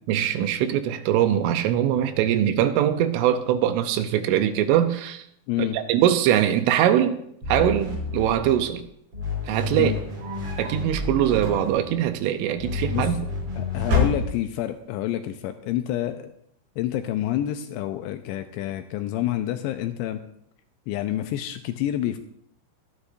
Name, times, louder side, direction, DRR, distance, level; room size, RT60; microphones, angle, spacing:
voice 1, 0.1-5.2 5.7-7.2 7.5-8.8 9.5-9.9 10.6-13.2, right 11 dB, 80° right, 3.2 m, -22 dB
sound 1, 7.4-8.8 9.1-12.0 12.6-14.3, left 3 dB, 30° right, 5.1 m, -31 dB
sound 2, 9.7-10.8 11.3-12.0 13.0-13.5 13.8-14.7, left 3 dB, 55° right, 7.4 m, -28 dB
voice 2, 12.8-13.2 13.5-16.3 16.8-20.2 20.9-22.2, left 12 dB, 85° left, 2.6 m, -28 dB
24.0 x 9.8 x 2.6 m
omnidirectional pair, 5.7 m